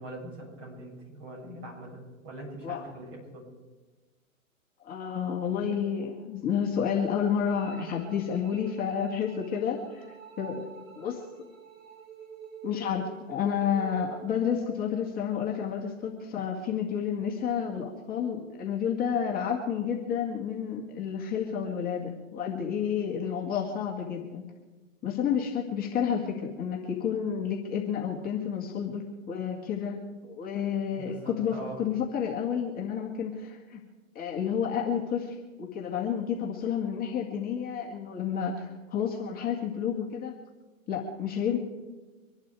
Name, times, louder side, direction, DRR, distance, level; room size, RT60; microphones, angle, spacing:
voice 1, 0.0-3.4 31.0-31.8, right 1 dB, 35° right, -2 dB, 7.4 m, -42 dB
voice 2, 4.8-10.0 10.4-10.7 11.0-11.2 12.6-24.4 25.0-33.8 34.2-40.3 40.9-41.6, left 7 dB, 20° left, -2 dB, 2.2 m, -30 dB
sound 1, 7.5-14.4, right 7 dB, 75° right, 3.8 m, -48 dB
25.0 x 11.5 x 4.9 m, 1.2 s
hypercardioid pair, 130°, 41 cm